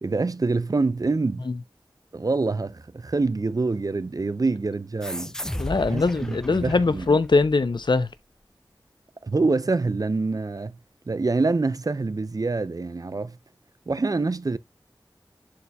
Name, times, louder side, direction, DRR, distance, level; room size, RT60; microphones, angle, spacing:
voice 1, 0.0-1.5 2.1-5.3 5.9-7.1 9.2-10.8 11.1-13.4 13.9-14.6, right 3 dB, 45° right, 0.5 m, -26 dB
sound 1, 5.0-8.1, equal, 5° left, 0.5 m, -35 dB
voice 2, 5.5-8.1, left 3 dB, 65° left, 0.6 m, -22 dB
11.0 x 4.2 x 2.3 m
wide cardioid pair, 40°, 8 cm